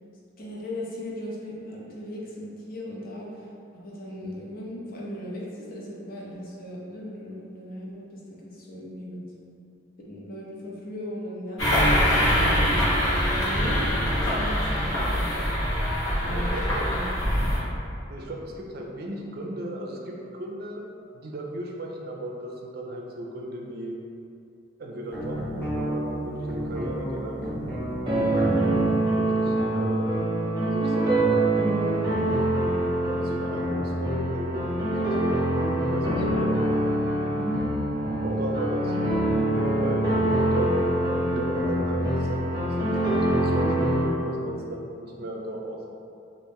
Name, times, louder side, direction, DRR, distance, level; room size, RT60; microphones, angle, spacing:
voice 1, 0.4-3.5 3.8-9.2 10.0-12.7 13.2-15.5 16.2-17.3 37.3-37.7 38.3-38.4, equal, 50° left, -4 dB, 0.6 m, -37 dB
sound 1, 11.6-17.6, equal, 80° left, 1.0 m, -23 dB
voice 2, 16.3-16.8 18.1-20.8 21.1-24.0 24.8-25.4 25.7-27.4 27.8-28.5 29.1-30.2 30.6-31.3 33.0-36.6 38.2-38.9 39.7-40.8 41.2-45.9, right 1 dB, 50° right, -1 dB, 0.4 m, -35 dB
sound 2, 25.1-28.9, equal, 10° left, 0.8 m, -31 dB
sound 3, 28.1-44.0, right 1 dB, 25° right, 0.8 m, -24 dB
3.1 x 2.5 x 3.4 m, 2.6 s
head